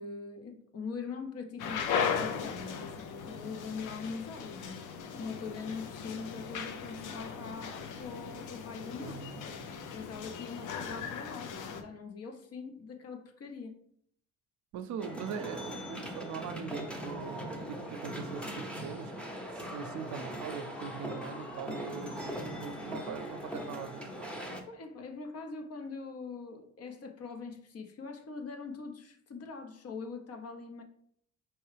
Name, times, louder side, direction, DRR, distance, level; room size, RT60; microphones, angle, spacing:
voice 1, 0.0-4.9 5.2-9.5 9.9-13.8 24.7-30.8, left 4 dB, 55° left, 0.8 m, -42 dB
sound 1, 1.6-11.8, left 6 dB, 85° left, 0.6 m, -38 dB
voice 2, 9.0-9.7 14.7-19.1 19.5-24.3, right 6 dB, 70° right, 0.5 m, -42 dB
sound 2, 15.0-24.6, equal, 5° left, 0.7 m, -40 dB
4.5 x 3.0 x 3.3 m
cardioid pair, 90°, 30 cm